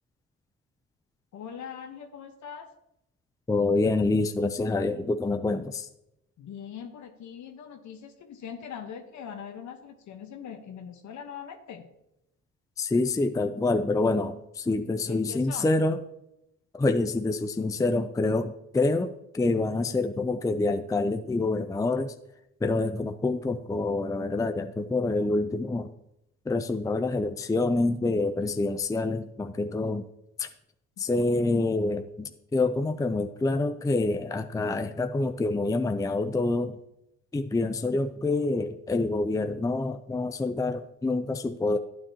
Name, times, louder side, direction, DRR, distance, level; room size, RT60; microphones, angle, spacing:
voice 1, 1.3-2.7 6.4-11.9 15.0-15.7 31.0-31.3, left 7 dB, 70° left, 5 dB, 1.2 m, -42 dB
voice 2, 3.5-5.9 12.8-16.0 16.7-22.1 22.6-25.9 26.5-30.1 30.4-30.5 31.0-36.8 37.3-41.8, left 2 dB, 10° left, 8 dB, 0.5 m, -27 dB
12.5 x 9.0 x 2.9 m, 0.84 s
cardioid pair, 90°, 30 cm